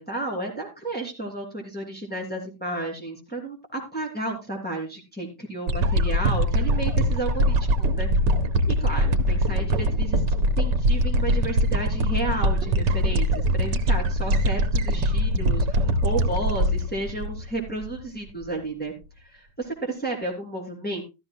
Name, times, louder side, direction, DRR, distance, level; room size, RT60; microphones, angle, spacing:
voice 1, 0.0-8.1 8.7-10.2 10.6-21.0, right 2 dB, 5° left, -1 dB, 2.9 m, -32 dB
sound 1, 5.7-18.0 18.5-18.6, equal, 85° right, 1.5 m, -22 dB
14.0 x 13.5 x 2.2 m, 0.26 s
omnidirectional pair, 1.9 m